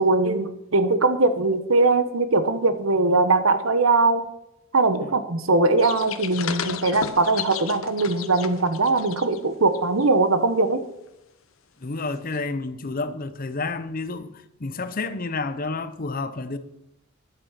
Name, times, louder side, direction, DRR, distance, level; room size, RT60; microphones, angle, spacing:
voice 1, 0.0-4.2 4.7-10.8, right 3 dB, 75° right, 1.1 m, -21 dB
sound 1, 5.8-9.4 9.7-10.0 12.3-12.4, left 7 dB, 75° left, 1.0 m, -34 dB
voice 2, 11.8-16.6, left 3 dB, 45° left, 0.8 m, -30 dB
11.5 x 8.2 x 5.8 m
head